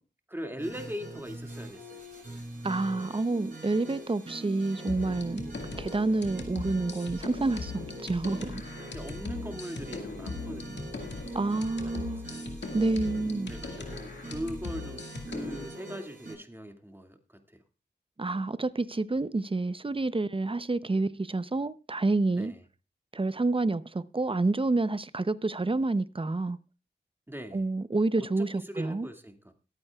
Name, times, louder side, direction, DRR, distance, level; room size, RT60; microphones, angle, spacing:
voice 1, 0.3-2.0 5.6-5.9 8.9-12.5 13.5-17.6 22.3-22.6 27.3-27.7 28.2-29.5, equal, 10° right, 2.1 m, -41 dB
sound 1, 0.6-16.3, right 2 dB, 50° right, 7.7 m, -43 dB
voice 2, 2.6-5.5 5.7-8.6 11.3-12.3 12.7-13.5 18.2-22.5 23.1-26.6 27.5-28.5 28.8-29.1, right 2 dB, 30° right, 0.7 m, -28 dB
sound 2, 4.9-15.6, left 4 dB, 75° left, 1.9 m, -40 dB
22.0 x 8.8 x 2.4 m
cardioid pair, 40°, 18 cm